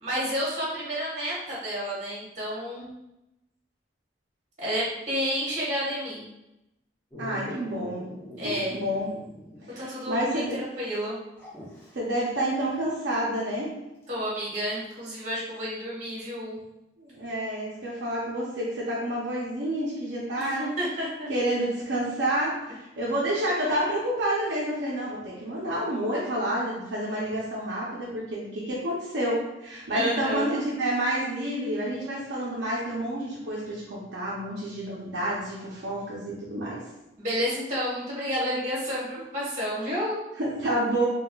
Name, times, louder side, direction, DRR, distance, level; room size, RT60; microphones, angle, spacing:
voice 1, 0.0-3.0 4.6-6.3 8.4-8.8 9.7-11.2 14.1-16.6 20.4-21.3 29.9-30.6 37.2-40.2, equal, 40° right, -7 dB, 1.2 m, -30 dB
Dog, 7.1-9.8 10.1-10.2 11.3-11.9 14.0-14.1, left 1 dB, 15° left, 0.7 m, -42 dB
voice 2, 7.2-8.1 8.4-9.1 9.7-10.6 11.9-13.7 17.0-20.7 21.3-36.8 40.4-41.1, right 1 dB, 70° right, -6 dB, 0.6 m, -29 dB
4.0 x 2.3 x 2.3 m, 0.91 s
head